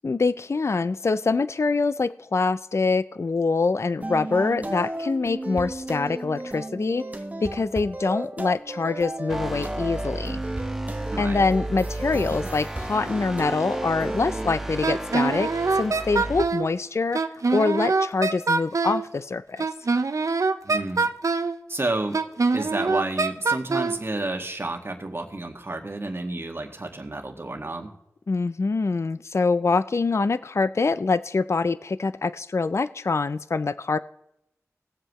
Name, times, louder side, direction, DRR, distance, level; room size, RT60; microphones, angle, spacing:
voice 1, 0.0-7.0 7.4-10.4 11.2-17.2 17.5-19.7 28.3-34.0, left 4 dB, 55° left, 14 dB, 0.4 m, -25 dB
sound 1, 4.0-14.6, right 1 dB, 25° right, 1.1 m, -34 dB
sound 2, 9.3-16.4, right 1 dB, 5° right, 1.4 m, -33 dB
voice 2, 11.1-11.5 20.6-21.1 21.7-22.2 22.5-27.9, right 2 dB, 45° right, 3 dB, 2.0 m, -30 dB
Wind instrument woodwind instrument, 14.8-16.7 17.1-19.1 19.6-21.6 22.1-24.0, right 4 dB, 70° right, 0.8 m, -24 dB
20.0 x 7.7 x 3.1 m, 0.81 s
wide cardioid pair, 50°, 6 cm